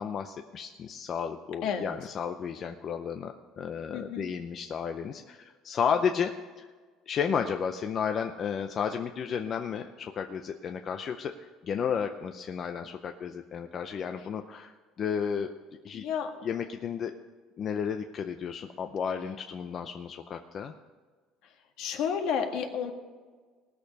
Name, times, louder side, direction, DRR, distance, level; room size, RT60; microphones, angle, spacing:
voice 1, 0.0-6.3 6.6-6.7 7.1-15.5 15.8-16.1 16.4-17.1 17.6-20.7, left 7 dB, 35° left, 6 dB, 0.5 m, -33 dB
voice 2, 1.6-1.9 3.9-4.2 15.9-16.3 21.8-22.9, left 7 dB, 65° left, 4 dB, 1.6 m, -31 dB
18.5 x 6.7 x 5.3 m, 1.5 s
cardioid pair, 160°, 0 cm